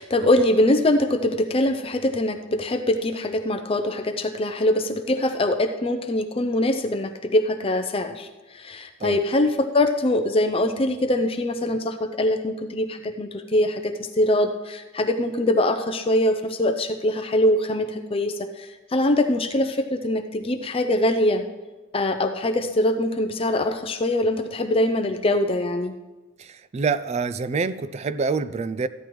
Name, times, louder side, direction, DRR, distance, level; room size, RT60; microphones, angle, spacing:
voice 1, 0.0-8.3 8.5-21.4 21.9-25.9, left 1 dB, 25° left, 7 dB, 0.5 m, -23 dB
voice 2, 26.4-28.9, right 4 dB, 30° right, 15 dB, 0.3 m, -26 dB
14.5 x 10.5 x 3.1 m, 1.1 s
head